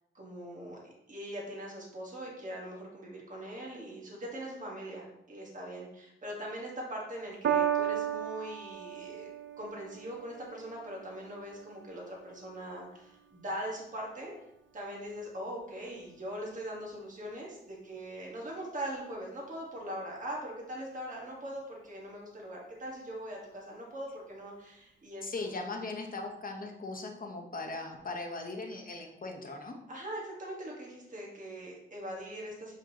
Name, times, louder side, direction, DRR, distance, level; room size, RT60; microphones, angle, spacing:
voice 1, 0.1-9.3 9.6-14.3 14.7-25.8 29.9-32.8, right 1 dB, 40° right, -3 dB, 1.4 m, -41 dB
Piano, 7.4-14.0 14.8-14.9, right 9 dB, 70° right, 0.4 m, -36 dB
voice 2, 25.2-29.7, left 3 dB, 45° left, 3 dB, 0.9 m, -39 dB
7.3 x 5.0 x 2.9 m, 0.87 s
wide cardioid pair, 180°, 20 cm